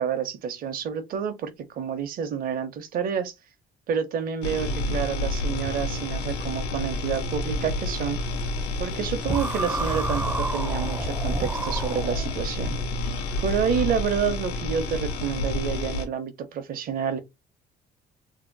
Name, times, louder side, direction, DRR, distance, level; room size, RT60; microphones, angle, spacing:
voice 1, 0.0-3.3 3.9-8.2 8.8-12.8 13.4-17.2, right 7 dB, 60° right, 0.8 m, -29 dB
sound 1, 4.4-16.1, left 1 dB, 90° left, 0.8 m, -29 dB
sound 2, 9.2-12.5, right 2 dB, 15° right, 0.4 m, -30 dB
2.8 x 2.0 x 3.9 m
cardioid pair, 110°, 17 cm